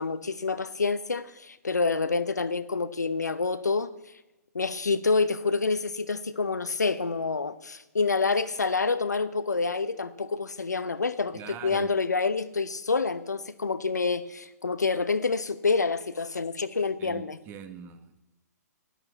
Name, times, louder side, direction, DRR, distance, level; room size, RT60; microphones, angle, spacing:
voice 1, 0.0-3.9 4.5-17.4, left 4 dB, 75° left, 0.9 m, -27 dB
voice 2, 11.3-11.9 17.0-18.2, right 8 dB, 25° right, 1.3 m, -43 dB
11.0 x 11.0 x 8.0 m
figure-of-eight pair, 120°, 9 cm